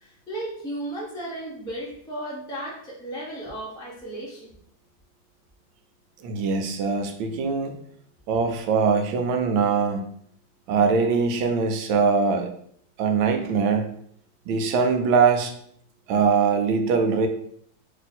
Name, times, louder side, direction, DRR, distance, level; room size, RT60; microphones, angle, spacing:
voice 1, 0.0-4.5, right 1 dB, 5° left, -5 dB, 0.4 m, -35 dB
voice 2, 6.2-7.7 8.3-10.0 10.7-12.5 13.0-14.0 14.5-15.5 16.1-17.3, right 5 dB, 85° right, 6 dB, 1.4 m, -22 dB
3.1 x 2.7 x 4.1 m, 0.65 s
omnidirectional pair, 2.1 m